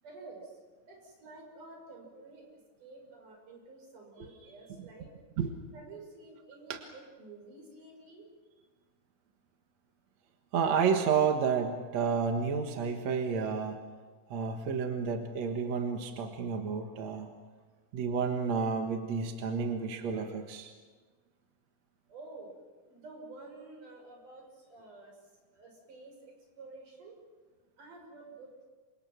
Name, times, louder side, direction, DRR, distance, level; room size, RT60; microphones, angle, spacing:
voice 1, 0.0-0.6 0.9-5.1 5.7-8.3 8.6-8.7 22.1-22.5 22.9-25.2 25.5-27.2 27.8-28.7, right 3 dB, 85° right, 1 dB, 7.7 m, -50 dB
voice 2, 10.5-13.8 14.3-17.3 17.9-20.7, right 6 dB, 65° right, 4 dB, 2.6 m, -30 dB
29.0 x 25.5 x 6.1 m, 1.4 s
omnidirectional pair, 3.6 m